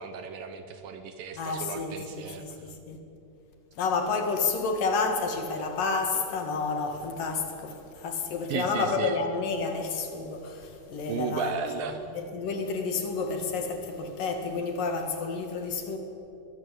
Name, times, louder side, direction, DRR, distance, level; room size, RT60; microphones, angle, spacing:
voice 1, 0.0-2.4 8.5-9.2 11.1-12.0, right 6 dB, 70° right, 2.5 m, -34 dB
voice 2, 1.4-2.6 2.9-3.0 3.8-11.6 12.1-16.0, left 4 dB, 60° left, 3.5 m, -30 dB
22.5 x 21.5 x 8.2 m
omnidirectional pair, 4.7 m